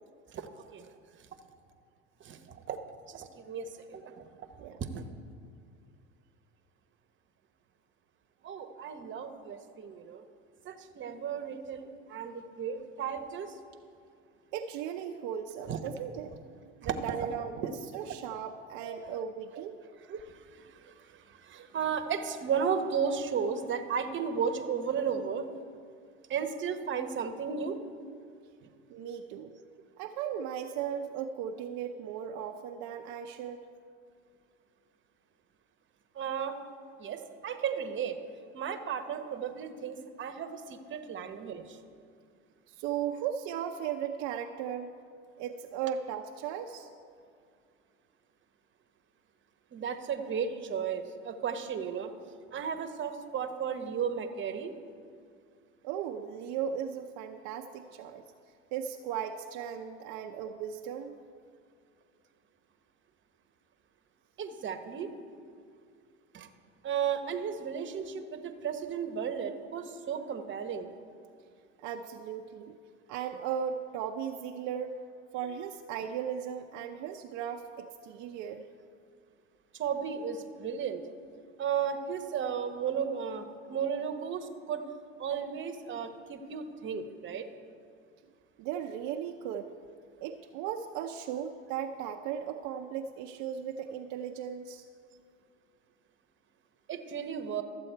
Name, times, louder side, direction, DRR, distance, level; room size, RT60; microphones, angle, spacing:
voice 1, 0.3-0.9 2.2-4.5 4.9-5.0 8.4-10.2 10.6-13.6 15.7-15.8 16.8-16.9 17.6-17.7 18.8-19.0 20.1-25.5 26.3-27.8 36.1-36.6 37.0-38.2 38.5-41.8 49.7-52.1 52.5-54.7 64.4-65.1 66.3-66.5 66.8-70.9 79.8-81.0 81.6-84.8 85.2-87.4 96.9-97.6, right 7 dB, 35° right, 8 dB, 1.0 m, -34 dB
voice 2, 14.5-16.4 16.8-19.7 20.9-21.2 28.9-29.5 30.0-33.6 42.7-44.9 45.4-46.9 55.8-58.2 58.7-61.1 71.8-72.8 73.1-75.0 75.3-78.7 88.6-89.7 90.2-94.9, right 8 dB, 65° right, 3 dB, 0.6 m, -37 dB
13.0 x 7.6 x 4.5 m, 2.3 s
supercardioid pair, 90°, 32 cm